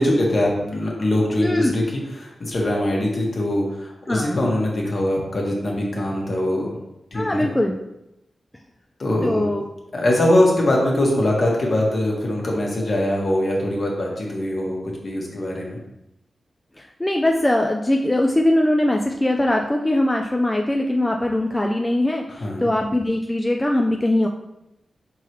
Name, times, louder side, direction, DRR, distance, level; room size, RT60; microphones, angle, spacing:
voice 1, 0.0-6.8 7.1-7.5 9.0-9.5 9.9-15.8 22.3-22.7, left 1 dB, 55° left, -2 dB, 1.3 m, -22 dB
voice 2, 1.4-1.7 4.1-4.4 7.1-7.8 9.2-9.6 16.8-24.3, left 1 dB, 15° left, 1 dB, 0.4 m, -21 dB
4.5 x 3.8 x 3.0 m, 0.86 s
cardioid pair, 60°, 0 cm